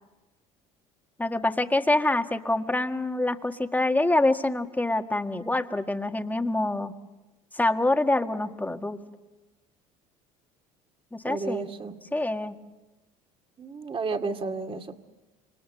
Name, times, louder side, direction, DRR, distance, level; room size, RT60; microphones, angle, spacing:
voice 1, 1.2-6.9 7.5-9.0 11.1-11.7 12.1-12.5, left 2 dB, 10° left, 6 dB, 1.8 m, -26 dB
voice 2, 11.3-12.0 13.6-14.9, right 4 dB, 30° right, 5 dB, 2.3 m, -32 dB
27.0 x 26.0 x 6.8 m, 1.1 s
hypercardioid pair, 75°, 18 cm